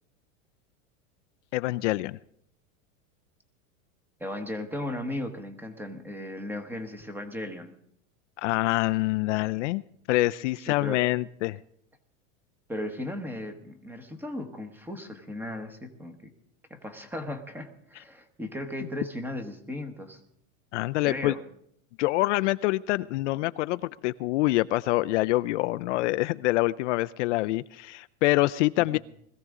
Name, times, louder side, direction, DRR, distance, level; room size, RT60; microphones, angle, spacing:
voice 1, 1.5-2.2 8.4-9.8 10.1-11.6 20.7-21.3 22.0-29.0, left 18 dB, 60° left, 14 dB, 0.5 m, -26 dB
voice 2, 4.2-7.7 10.7-11.1 12.7-16.3 16.7-20.2 21.0-21.4, left 1 dB, 5° right, 7 dB, 1.1 m, -36 dB
21.0 x 15.0 x 3.7 m, 0.70 s
supercardioid pair, 150°, 41 cm